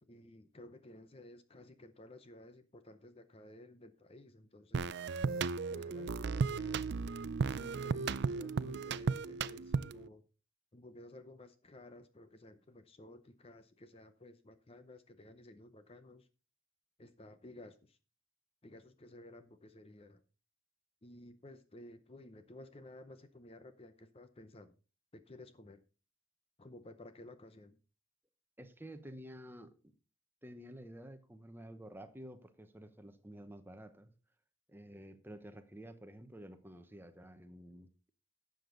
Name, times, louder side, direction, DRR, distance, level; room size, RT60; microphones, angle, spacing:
voice 1, 0.0-4.9 5.7-6.9 7.5-10.2 10.7-16.3 17.0-18.0 18.6-20.2 21.0-24.7 25.1-25.8 26.6-27.8, left 1 dB, 30° left, 10 dB, 0.7 m, -55 dB
sound 1, 4.7-10.1, right 5 dB, 55° right, 0.4 m, -35 dB
voice 2, 28.6-29.7 30.4-34.1 34.7-37.9, equal, 10° right, 9 dB, 0.9 m, -51 dB
12.0 x 7.9 x 3.8 m, 0.34 s
head